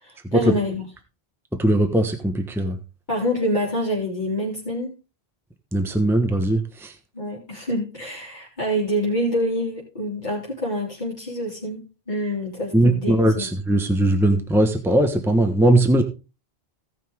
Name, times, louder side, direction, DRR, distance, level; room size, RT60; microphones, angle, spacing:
voice 1, 0.0-0.9 3.1-4.9 7.1-13.5, equal, 45° left, -7 dB, 3.4 m, -26 dB
voice 2, 1.5-2.8 5.7-6.9 12.7-16.0, right 1 dB, ahead, 6 dB, 1.1 m, -19 dB
17.0 x 5.9 x 3.5 m, 0.31 s
omnidirectional pair, 1.0 m